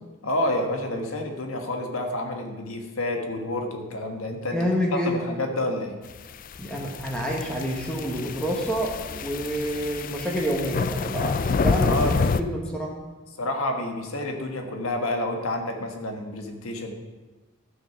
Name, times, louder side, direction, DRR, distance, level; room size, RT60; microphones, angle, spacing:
voice 1, 0.2-4.6 4.9-6.0 11.9-12.1 13.4-16.9, left 1 dB, 85° left, 4 dB, 1.5 m, -29 dB
voice 2, 4.5-5.2 6.6-12.9, equal, 5° left, -2 dB, 1.2 m, -28 dB
sound 1, 6.3-12.4, left 4 dB, 40° left, 0.4 m, -28 dB
12.5 x 6.4 x 5.9 m, 1.2 s
head